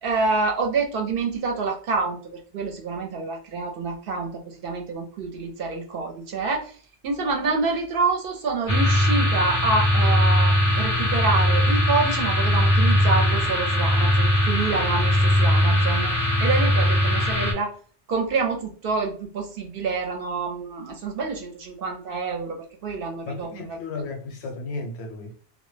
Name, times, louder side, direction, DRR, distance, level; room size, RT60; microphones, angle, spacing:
voice 1, 0.0-6.8 7.0-17.8 18.1-24.0, right 4 dB, 65° right, 0.7 m, -27 dB
sound 1, 8.7-17.5, left 1 dB, 30° left, 0.4 m, -20 dB
voice 2, 23.2-25.3, left 3 dB, 70° left, 0.8 m, -34 dB
2.1 x 2.0 x 3.1 m
omnidirectional pair, 1.1 m